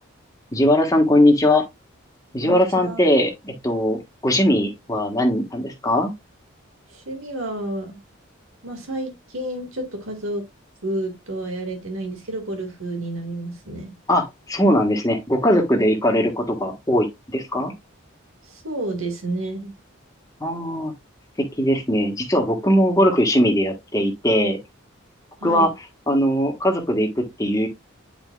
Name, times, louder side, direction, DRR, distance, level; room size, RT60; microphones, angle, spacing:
voice 1, 0.5-1.6 2.3-6.1 14.1-17.7 20.4-20.9 21.4-24.6 25.4-25.7 26.1-27.7, equal, 15° left, 1.4 m, -20 dB
voice 2, 2.4-3.1 6.9-8.0 8.6-10.4 10.8-13.9 18.5-19.7 25.4-25.7, right 1 dB, 80° right, 2.1 m, -30 dB
9.4 x 4.7 x 2.4 m
head